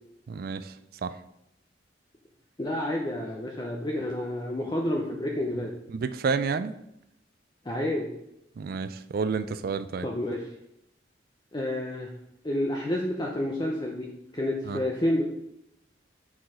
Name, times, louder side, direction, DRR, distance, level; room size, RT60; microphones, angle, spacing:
voice 1, 0.3-0.7 1.0-1.1 5.9-6.7 8.6-10.1 14.7-14.8, right 5 dB, 55° right, 12 dB, 0.3 m, -30 dB
voice 2, 2.6-5.8 7.6-8.1 10.0-10.5 11.5-12.1 12.4-15.2, left 1 dB, 25° left, -1 dB, 0.6 m, -29 dB
5.9 x 4.7 x 4.9 m, 0.81 s
head